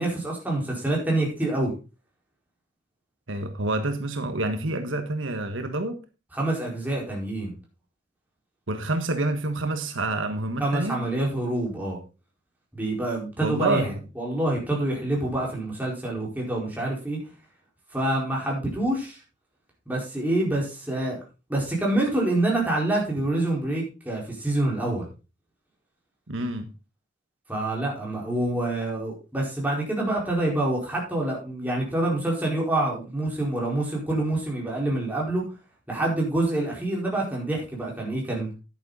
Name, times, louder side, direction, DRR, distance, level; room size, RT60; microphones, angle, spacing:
voice 1, 0.0-1.7 6.3-7.5 10.6-12.0 12.7-17.2 17.9-19.2 19.9-21.2 21.5-25.1 27.5-35.4 35.9-38.5, right 1 dB, 10° right, 4.5 m, -26 dB
voice 2, 3.3-5.9 8.7-11.0 13.4-14.0 26.3-26.7, right 2 dB, 80° right, 1.5 m, -27 dB
11.0 x 9.2 x 4.0 m
head